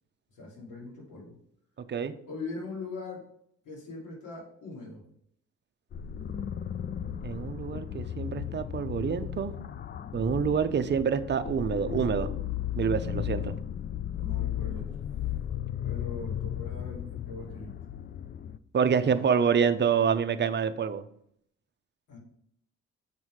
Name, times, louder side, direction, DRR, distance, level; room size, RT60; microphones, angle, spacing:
voice 1, 0.3-1.4 2.3-3.2 3.6-5.0 13.8-15.0 15.8-17.7 18.8-19.5 22.1-22.2, left 3 dB, 85° left, -3 dB, 2.7 m, -41 dB
sound 1, 5.9-18.6, left 10 dB, 35° left, 0.4 m, -35 dB
voice 2, 7.2-9.6 10.1-12.3 12.8-13.6 18.7-21.0, right 7 dB, 35° right, 11 dB, 0.6 m, -27 dB
7.4 x 4.1 x 4.7 m, 0.69 s
cardioid pair, 90°, 30 cm